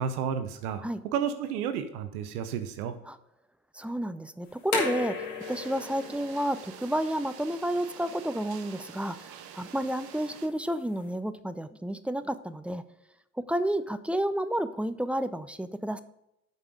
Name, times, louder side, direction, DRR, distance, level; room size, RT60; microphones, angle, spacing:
voice 1, 0.0-3.0, right 7 dB, 80° right, 9 dB, 0.8 m, -32 dB
voice 2, 3.7-5.1 5.5-12.8 13.5-16.0, right 1 dB, 5° right, 12 dB, 0.4 m, -31 dB
sound 1, 4.4-11.1, left 4 dB, 65° left, 2.4 m, -38 dB
sound 2, 5.4-10.5, right 9 dB, 55° right, 1.0 m, -47 dB
7.9 x 5.4 x 4.9 m, 0.85 s
hypercardioid pair, 60°, 44 cm